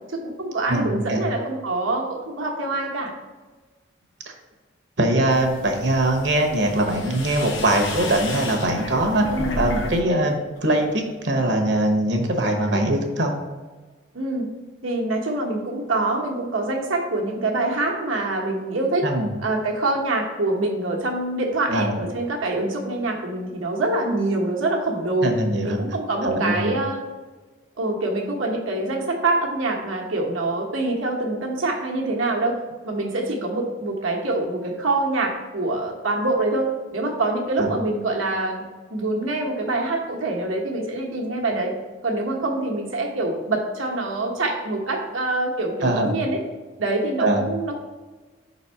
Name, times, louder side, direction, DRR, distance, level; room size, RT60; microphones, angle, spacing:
voice 1, 0.1-3.1 9.3-9.6 12.7-12.8 14.1-14.5 14.8-19.0 19.4-25.3 25.6-27.0 27.8-32.6 32.8-38.6 38.9-41.7 42.0-46.4 46.8-47.8, right 2 dB, 85° right, 0 dB, 1.2 m, -25 dB
voice 2, 0.7-1.2 5.0-9.3 9.6-13.3 19.0-19.3 21.7-22.0 25.2-25.8 26.2-26.7 37.6-37.7 45.8-46.2 47.2-47.5, right 1 dB, 60° right, 3 dB, 1.0 m, -22 dB
sound 1, 5.3-10.0 10.3-10.9, left 1 dB, 75° left, 0.9 m, -32 dB
5.3 x 4.1 x 5.6 m, 1.3 s
head